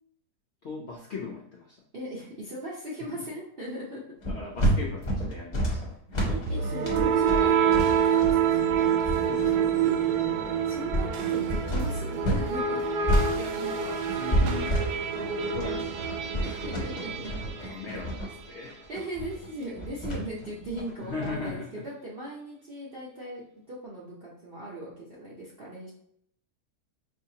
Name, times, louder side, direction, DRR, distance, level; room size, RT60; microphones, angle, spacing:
voice 1, 0.6-1.8 3.0-3.3 4.3-6.6 9.2-9.9 13.4-14.8 15.1-17.0 17.6-18.8 21.0-21.8, left 4 dB, 70° left, -1 dB, 0.6 m, -39 dB
voice 2, 1.9-4.0 6.3-9.3 9.8-10.0 10.6-12.8 16.4-17.9 18.9-25.9, right 1 dB, 55° right, -5 dB, 0.6 m, -38 dB
sound 1, 4.2-12.5 12.8-21.5, equal, 35° left, 0.8 m, -29 dB
sound 2, 6.5-18.4, right 7 dB, 80° right, 1.1 m, -27 dB
5.0 x 2.7 x 2.7 m, 0.70 s
omnidirectional pair, 1.8 m